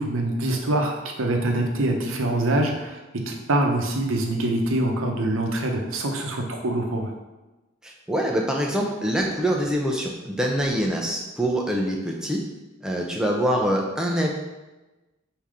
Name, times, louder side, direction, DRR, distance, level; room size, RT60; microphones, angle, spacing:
voice 1, 0.0-7.1, right 1 dB, 85° right, 2 dB, 0.7 m, -24 dB
voice 2, 7.8-12.4 12.8-14.3, equal, 5° right, -1 dB, 0.5 m, -25 dB
3.7 x 2.8 x 4.7 m, 1.1 s
head